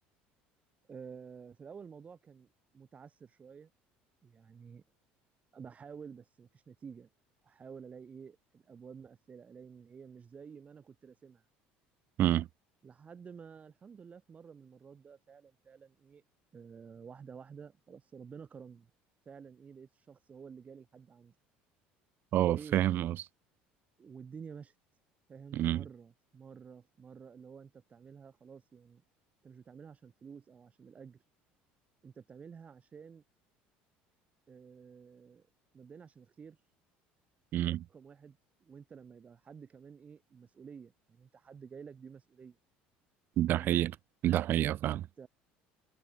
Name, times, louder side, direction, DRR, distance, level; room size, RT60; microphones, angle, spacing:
voice 1, 0.9-3.7 4.2-4.8 5.5-7.1 7.4-11.4 12.8-16.2 16.5-18.9 19.2-21.3 22.4-22.8 24.0-24.8 25.3-29.0 29.4-31.2 32.0-33.2 34.5-35.5 35.7-36.6 37.6-42.6 43.5-43.8 44.8-45.3, right 6 dB, 35° right, 5.0 m, -51 dB
voice 2, 22.3-23.2 25.5-25.8 37.5-37.8 43.4-44.0 44.2-45.1, right 13 dB, 55° right, 0.3 m, -28 dB
supercardioid pair, 90°, 4 cm